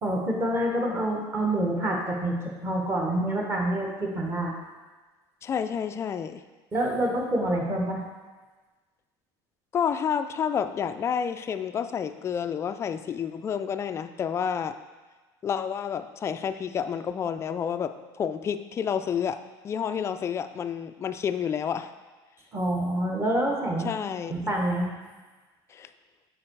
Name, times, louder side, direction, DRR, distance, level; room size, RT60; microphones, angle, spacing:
voice 1, 0.0-4.5 6.7-8.0 22.5-23.9 24.3-24.9, right 1 dB, 20° right, -1 dB, 1.4 m, -27 dB
voice 2, 5.4-6.4 9.7-14.8 15.4-19.4 19.6-21.9 23.8-24.5 25.7-25.9, left 7 dB, 25° left, 9 dB, 0.3 m, -29 dB
7.5 x 4.6 x 4.6 m, 1.3 s
cardioid pair, 140°, 11 cm